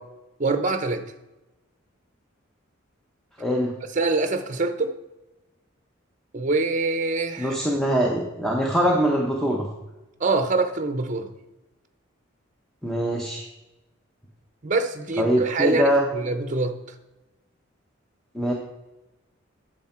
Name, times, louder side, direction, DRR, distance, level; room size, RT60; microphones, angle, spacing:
voice 1, 0.4-1.0 3.9-5.0 6.3-7.6 10.2-11.3 14.6-16.8, right 3 dB, 40° right, 9 dB, 0.7 m, -24 dB
voice 2, 3.4-3.7 7.4-9.7 12.8-13.5 15.2-16.0 18.3-18.5, equal, ahead, -1 dB, 0.8 m, -23 dB
9.5 x 6.7 x 4.4 m, 1.0 s
head